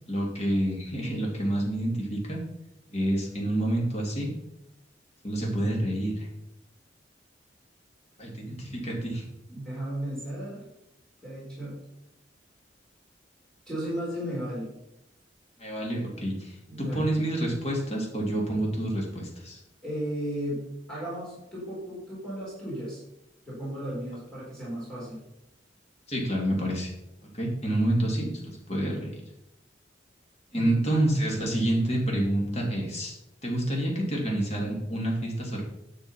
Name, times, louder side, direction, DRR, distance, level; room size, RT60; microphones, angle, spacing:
voice 1, 0.1-2.4 2.9-4.3 5.2-6.3 8.2-9.2 15.6-19.6 26.1-26.9 27.3-29.2 30.5-33.1 33.4-35.6, right 1 dB, 35° left, -1 dB, 2.9 m, -28 dB
voice 2, 9.5-10.7 11.2-11.8 13.7-14.7 16.7-17.1 19.8-23.0 23.5-25.2 30.5-30.8, equal, 5° left, -8 dB, 4.3 m, -35 dB
10.0 x 6.3 x 5.8 m, 0.85 s
head